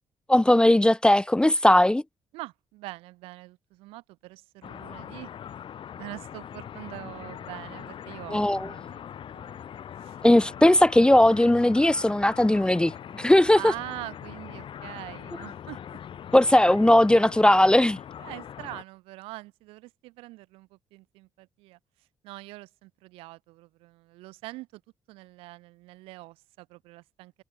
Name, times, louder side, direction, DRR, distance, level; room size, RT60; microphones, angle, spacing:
voice 1, 0.3-2.0 8.3-8.7 10.2-13.6 16.3-18.0, left 1 dB, 10° left, 0.4 m, -18 dB
voice 2, 2.3-5.3 5.9-9.0 9.3-9.6 10.0-10.2 13.6-16.0 18.2-21.8 22.2-24.8 25.1-27.3, right 20 dB, 90° right, 2.2 m, -43 dB
sound 1, 4.6-18.8, left 9 dB, 65° left, 4.3 m, -41 dB
supercardioid pair, 55°, 9 cm